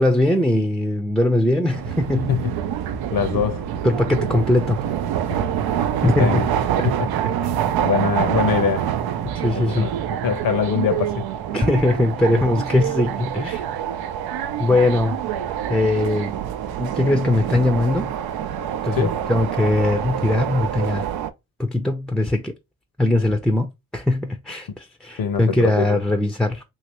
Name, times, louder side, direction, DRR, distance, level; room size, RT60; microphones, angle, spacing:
voice 1, 0.0-2.3 3.3-3.5 3.8-4.8 6.0-6.5 6.8-6.9 7.4-7.7 9.3-9.9 11.5-13.7 14.6-15.2 15.7-16.3 16.8-18.1 18.8-21.1 21.6-22.5 23.0-26.6, left 1 dB, ahead, 0.5 m, -20 dB
sound 1, 1.7-21.3, right 10 dB, 70° right, 0.5 m, -26 dB
voice 2, 3.1-3.6 6.2-6.5 6.8-7.1 7.8-8.9 9.6-9.9 10.2-11.2 18.9-19.2 25.2-25.4 25.8-26.0, left 7 dB, 60° left, 0.8 m, -22 dB
2.9 x 2.8 x 2.9 m
supercardioid pair, 50°, 39 cm